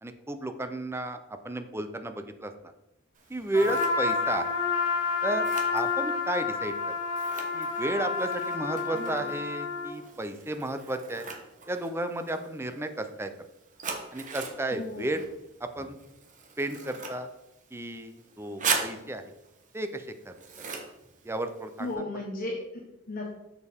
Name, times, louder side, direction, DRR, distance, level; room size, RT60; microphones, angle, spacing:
voice 1, 0.0-2.5 3.3-4.5 5.2-5.5 5.7-6.7 7.5-11.3 11.7-13.3 14.1-15.2 15.6-16.0 16.6-17.3 17.7-19.2 19.7-20.4 21.2-22.2, right 1 dB, 10° right, 8 dB, 0.5 m, -33 dB
Scissors, 3.2-21.9, right 5 dB, 40° right, 1.1 m, -40 dB
Trumpet, 3.5-10.0, left 4 dB, 60° left, 2.0 m, -29 dB
voice 2, 8.9-9.3 14.7-15.1 21.8-23.4, left 2 dB, 45° left, -1 dB, 1.0 m, -36 dB
6.8 x 6.6 x 3.5 m, 0.90 s
head